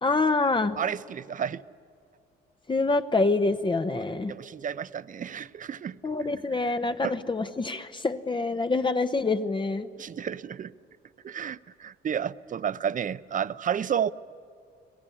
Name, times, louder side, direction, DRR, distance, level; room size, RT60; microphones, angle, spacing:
voice 1, 0.0-0.8 2.7-4.3 6.0-9.9, left 3 dB, 25° left, 8 dB, 0.9 m, -26 dB
voice 2, 0.8-1.6 4.3-6.0 7.0-7.1 10.0-10.7 11.2-14.1, right 8 dB, 40° right, 16 dB, 0.6 m, -31 dB
30.0 x 18.5 x 9.9 m, 2.3 s
cardioid pair, 90°, 20 cm